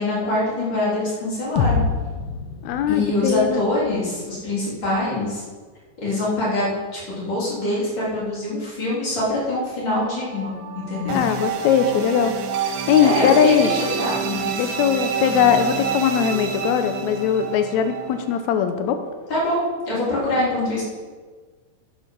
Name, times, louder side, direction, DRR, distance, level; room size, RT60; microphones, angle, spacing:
voice 1, 0.0-1.8 2.9-5.4 6.0-11.2 13.0-14.6 19.3-20.8, left 1 dB, 35° left, -7 dB, 3.9 m, -24 dB
sound 1, 1.6-5.5, left 5 dB, 65° left, 1.5 m, -28 dB
voice 2, 2.6-3.6 11.1-13.7 14.6-19.0, left 8 dB, 90° left, 8 dB, 1.6 m, -20 dB
sound 2, 10.0-18.4, right 7 dB, 70° right, 2.0 m, -28 dB
12.5 x 7.2 x 5.4 m, 1.5 s
omnidirectional pair, 4.1 m